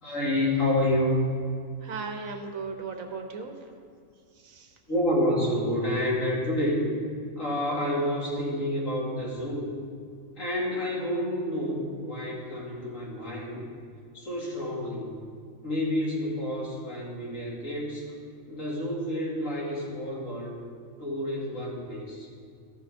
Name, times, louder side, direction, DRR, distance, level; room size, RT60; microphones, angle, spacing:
voice 1, 0.0-1.2 4.9-6.9 7.3-9.8 10.4-13.6 14.1-15.2 15.6-18.1 18.5-20.6 21.0-22.3, left 1 dB, 70° left, -6 dB, 2.7 m, -29 dB
voice 2, 1.8-3.6 4.4-4.7, right 4 dB, 80° right, 4 dB, 1.4 m, -36 dB
15.0 x 5.6 x 4.3 m, 2.2 s
omnidirectional pair, 1.4 m